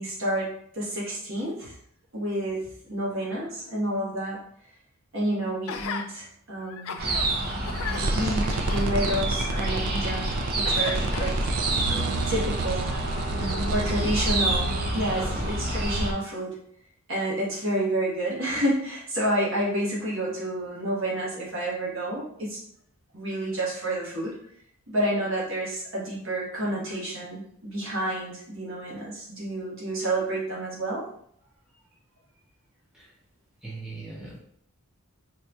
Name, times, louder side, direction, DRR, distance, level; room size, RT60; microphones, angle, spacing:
voice 1, 0.0-1.7 2.1-4.4 5.1-6.9 8.1-11.5 11.9-12.9 13.2-13.4 13.7-16.6 17.1-22.6 23.1-24.4 24.9-31.1, right 1 dB, 60° right, -5 dB, 1.3 m, -29 dB
Gasp, 5.7-6.1 6.6-7.3 7.7-10.2 10.6-11.7 12.4-12.5, left 6 dB, 70° left, 0.4 m, -37 dB
sound 1, 7.0-16.1, right 1 dB, 45° right, 0.6 m, -28 dB
sound 2, 8.0-16.1, right 3 dB, 90° right, 0.4 m, -31 dB
voice 2, 13.0-14.1 14.6-15.3 33.6-34.4, right 1 dB, ahead, -7 dB, 0.7 m, -38 dB
4.2 x 2.6 x 2.3 m, 0.65 s
head